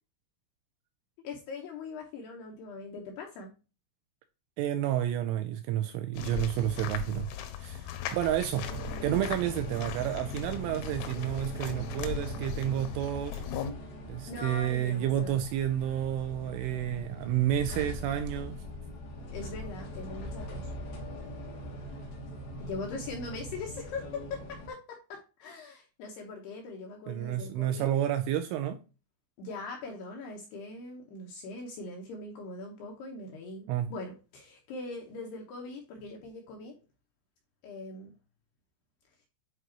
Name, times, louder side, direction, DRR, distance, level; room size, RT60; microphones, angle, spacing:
voice 1, 1.2-3.5 8.7-9.6 14.3-15.4 19.3-20.7 22.6-27.9 29.4-36.7 37.6-38.1, left 3 dB, 75° left, 2.5 m, -41 dB
voice 2, 4.6-7.3 7.6-8.7 9.0-13.4 14.1-18.6 27.1-28.8 33.7-33.9, right 11 dB, 85° right, 2.8 m, -30 dB
sound 1, 6.1-13.7, left 9 dB, 90° left, 3.6 m, -39 dB
sound 2, 8.6-24.7, equal, 60° left, 2.9 m, -41 dB
10.0 x 4.2 x 2.9 m
omnidirectional pair, 6.0 m